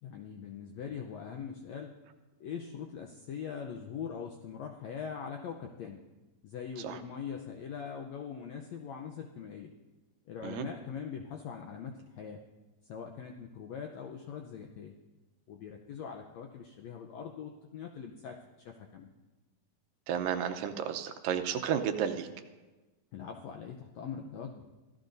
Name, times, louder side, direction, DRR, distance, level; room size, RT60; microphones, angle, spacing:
voice 1, 0.0-1.9 2.4-6.0 6.4-9.7 10.2-12.4 12.8-15.0 15.5-19.1 23.1-24.7, left 7 dB, 85° left, 3 dB, 1.6 m, -42 dB
voice 2, 20.1-22.3, right 8 dB, 80° right, 7 dB, 2.4 m, -32 dB
25.0 x 15.5 x 2.7 m, 1.2 s
omnidirectional pair, 4.1 m